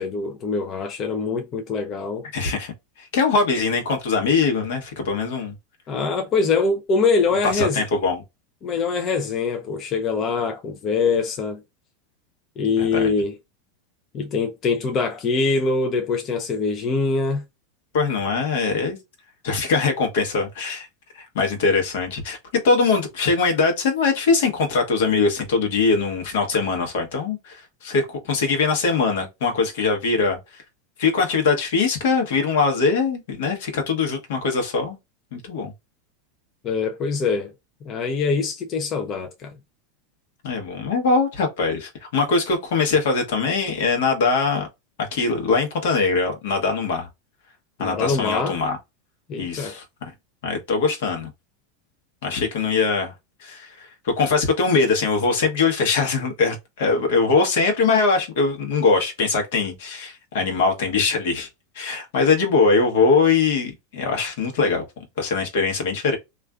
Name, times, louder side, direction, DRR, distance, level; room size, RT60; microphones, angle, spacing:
voice 1, 0.0-2.2 5.9-7.8 8.6-11.6 12.6-13.4 14.1-17.4 36.6-37.5 37.8-39.5 47.8-48.6 49.3-49.7, left 4 dB, 40° left, 0.5 m, -23 dB
voice 2, 2.3-2.7 3.0-5.5 7.4-8.2 12.8-13.1 17.9-19.0 19.4-20.9 21.1-30.4 31.0-35.0 35.3-35.7 40.4-44.7 45.0-47.1 47.8-48.8 49.4-49.8 50.4-51.3 52.2-53.1 53.4-61.5 61.7-64.8 65.2-66.2, left 4 dB, 75° left, 1.0 m, -22 dB
2.4 x 2.4 x 2.3 m
hypercardioid pair, 105°, 0 cm